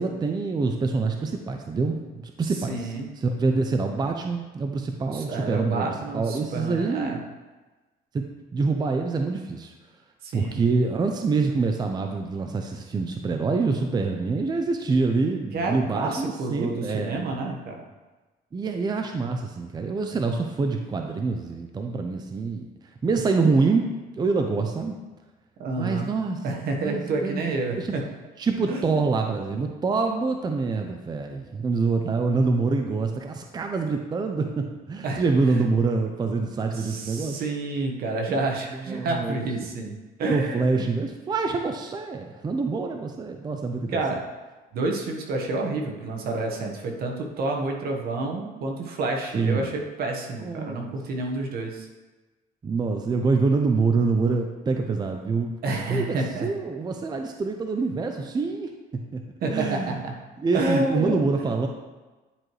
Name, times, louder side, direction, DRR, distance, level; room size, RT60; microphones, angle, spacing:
voice 1, 0.0-2.9 3.2-5.9 6.1-7.2 8.1-8.2 8.5-9.7 10.3-17.2 18.5-22.7 23.0-23.9 24.2-25.0 25.8-26.4 26.8-27.5 27.8-27.9 28.4-37.4 38.8-39.4 40.3-44.0 49.3-49.7 50.4-50.9 52.6-55.5 55.9-58.7 59.1-59.2 59.5-60.0 60.4-61.7, right 4 dB, 25° right, 4 dB, 0.5 m, -26 dB
voice 2, 2.7-3.1 5.1-7.2 10.2-10.6 15.5-17.8 25.6-26.1 26.4-28.0 28.7-29.0 35.0-35.2 35.5-35.6 36.7-40.9 43.9-44.2 44.7-51.9 55.6-56.5 59.4-60.1 60.5-61.5, right 2 dB, 65° right, 1 dB, 1.2 m, -29 dB
10.0 x 4.7 x 3.1 m, 1.2 s
cardioid pair, 110°, 17 cm